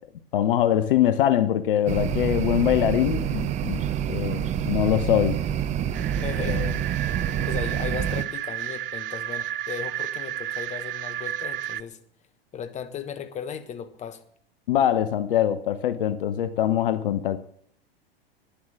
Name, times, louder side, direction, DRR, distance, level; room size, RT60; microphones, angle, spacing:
voice 1, 0.3-5.4 6.4-6.7 14.7-17.4, left 11 dB, 60° left, 1.0 m, -23 dB
sound 1, 1.9-8.2, right 9 dB, 25° right, 0.7 m, -27 dB
sound 2, 5.9-11.8, right 12 dB, 65° right, 0.5 m, -32 dB
voice 2, 6.2-6.7 7.3-12.0 12.5-14.2, left 8 dB, 25° left, 1.3 m, -36 dB
10.5 x 10.5 x 7.6 m
figure-of-eight pair, 100°, 30 cm